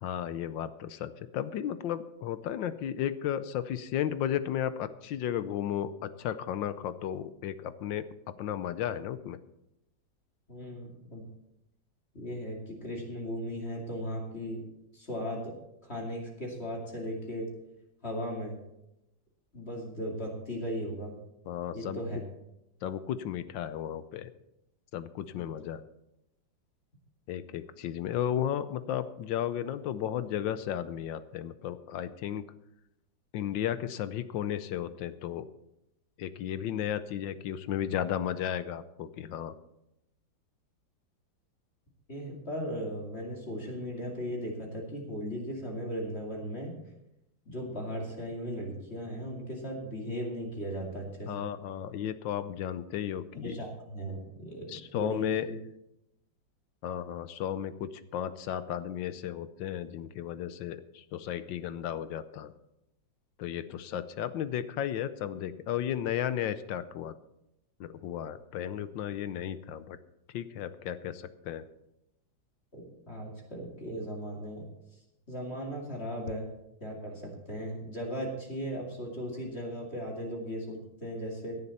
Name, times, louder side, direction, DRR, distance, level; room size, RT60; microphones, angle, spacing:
voice 1, 0.0-9.4 21.5-22.0 22.8-24.3 24.9-25.8 27.3-32.4 33.3-35.4 36.2-39.5 51.3-53.6 54.7-55.5 56.8-62.5 63.4-67.1 67.8-70.0 70.3-71.6, left 10 dB, 75° left, 13 dB, 1.4 m, -34 dB
voice 2, 10.5-11.2 12.1-14.6 14.9-15.5 15.8-17.5 18.0-18.5 19.5-21.1 21.7-22.2 25.3-25.4 42.1-46.7 47.5-51.5 53.3-55.6 72.7-74.7 75.3-76.5 76.8-81.6, equal, 30° left, -1 dB, 2.7 m, -37 dB
17.0 x 11.0 x 4.2 m, 0.86 s
omnidirectional pair, 2.1 m